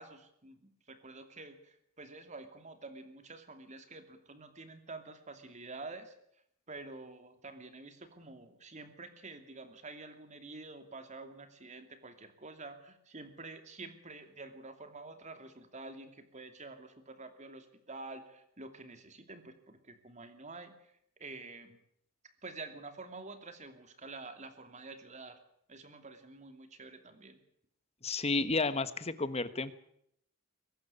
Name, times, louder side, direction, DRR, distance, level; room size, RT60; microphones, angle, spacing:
voice 1, 0.0-6.1 6.7-20.9 21.2-21.8 22.4-25.4 25.7-27.4, right 3 dB, 35° right, 8 dB, 2.7 m, -48 dB
voice 2, 28.0-29.8, left 3 dB, 30° left, 13 dB, 1.2 m, -32 dB
23.5 x 12.5 x 9.8 m, 0.72 s
head